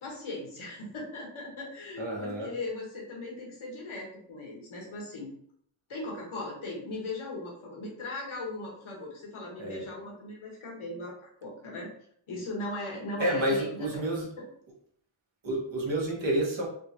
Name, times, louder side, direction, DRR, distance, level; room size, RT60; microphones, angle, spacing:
voice 1, 0.0-5.3 5.9-11.9 12.3-14.0 14.4-14.5, left 2 dB, 85° left, -2 dB, 1.1 m, -38 dB
voice 2, 2.0-2.5 9.6-9.9 13.2-14.3 15.4-16.7, right 1 dB, 65° right, -2 dB, 1.1 m, -29 dB
3.6 x 2.3 x 2.7 m, 0.65 s
cardioid pair, 60°, 48 cm